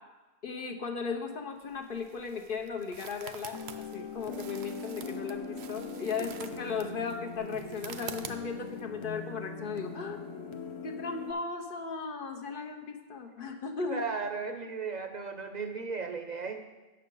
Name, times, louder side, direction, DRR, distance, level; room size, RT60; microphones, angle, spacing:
voice 1, 0.4-3.6 3.9-10.6 10.8-14.0, left 5 dB, 60° left, 3 dB, 1.0 m, -36 dB
sound 1, 1.6-8.8, right 8 dB, 85° right, 0.9 m, -47 dB
sound 2, 3.5-11.3, left 4 dB, 35° left, 0.5 m, -41 dB
voice 2, 13.8-16.6, right 4 dB, 50° right, 6 dB, 0.6 m, -36 dB
8.8 x 6.5 x 5.3 m, 1.2 s
omnidirectional pair, 1.1 m